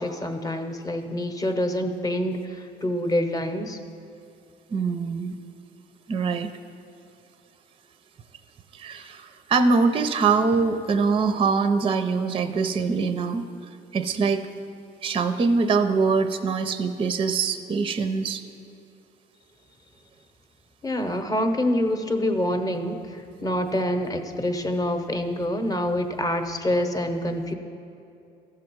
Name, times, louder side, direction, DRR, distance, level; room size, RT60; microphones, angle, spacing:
voice 1, 0.0-3.8 20.8-27.5, left 1 dB, 20° left, 6 dB, 0.8 m, -26 dB
voice 2, 4.7-5.4 6.1-6.5 8.7-13.4 13.9-14.5 15.0-18.4, right 4 dB, 30° right, 10 dB, 0.5 m, -23 dB
14.0 x 6.3 x 4.5 m, 2.7 s
cardioid pair, 110°, 17 cm